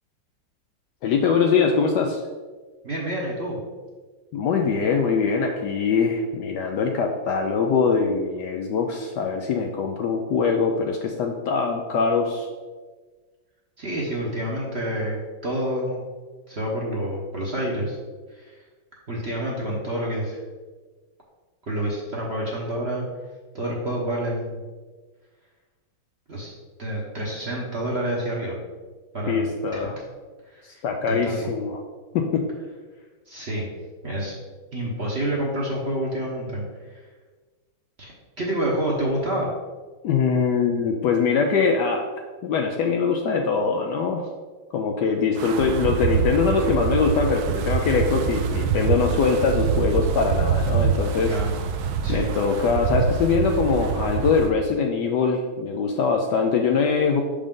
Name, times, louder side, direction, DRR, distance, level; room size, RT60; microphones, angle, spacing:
voice 1, 1.0-2.2 4.3-12.5 29.3-30.0 30.6-31.8 32.1-32.5 40.0-42.0 42.4-44.2 44.7-51.3 52.1-57.2, left 5 dB, 75° left, 3 dB, 1.0 m, -22 dB
voice 2, 2.8-3.6 13.8-16.1 16.5-18.0 18.3-18.6 19.1-20.4 21.7-23.0 23.5-24.6 26.3-26.5 26.8-28.6 29.1-29.5 29.7-29.8 30.4-31.4 33.3-33.7 34.0-34.3 34.7-37.0 38.0-39.5 51.2-51.6 52.0-52.3, right 1 dB, 45° right, -4 dB, 0.9 m, -28 dB
Wind, 45.4-54.5, right 6 dB, 85° right, 0.8 m, -25 dB
6.4 x 5.1 x 3.6 m, 1.4 s
omnidirectional pair, 2.2 m